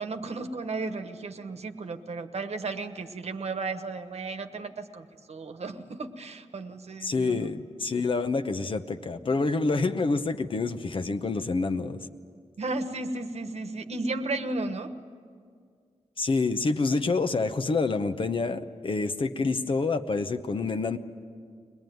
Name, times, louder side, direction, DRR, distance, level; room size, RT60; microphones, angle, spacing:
voice 1, 0.0-7.5 12.6-15.0, right 3 dB, 60° right, 8 dB, 1.2 m, -34 dB
voice 2, 7.0-12.0 16.2-21.0, left 3 dB, 45° left, 7 dB, 0.8 m, -27 dB
22.5 x 20.0 x 9.3 m, 2.1 s
wide cardioid pair, 165°, 12 cm